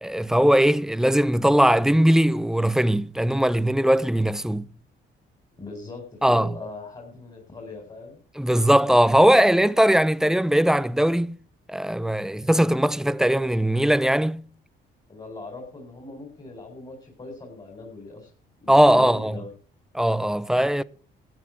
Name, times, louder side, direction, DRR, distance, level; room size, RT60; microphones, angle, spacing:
voice 1, 0.0-4.7 6.2-6.5 8.4-11.4 11.7-14.4 18.7-19.4 19.9-20.8, right 1 dB, 5° right, 0.6 m, -20 dB
voice 2, 5.6-8.2 15.1-18.3 18.6-19.5, left 3 dB, 25° left, 4.4 m, -40 dB
13.0 x 9.1 x 6.0 m
cardioid pair, 90°, 20 cm